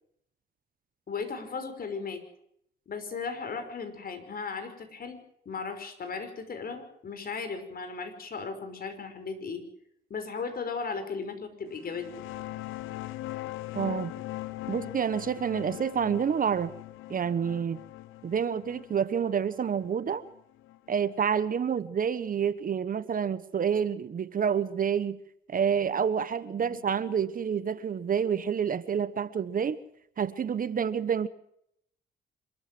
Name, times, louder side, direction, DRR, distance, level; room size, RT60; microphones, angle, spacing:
voice 1, 1.1-2.2 2.9-5.2 5.5-9.6 10.1-12.1 26.6-26.8, left 5 dB, 50° left, 8 dB, 5.4 m, -36 dB
sound 1, 11.8-21.1, left 16 dB, 85° left, 0.9 m, -41 dB
voice 2, 13.7-14.1 14.7-16.7 17.1-17.8 18.2-20.2 20.9-25.2 25.5-29.8 30.2-31.3, right 7 dB, 45° right, 15 dB, 1.1 m, -28 dB
26.0 x 14.0 x 7.6 m, 0.72 s
cardioid pair, 90°, 20 cm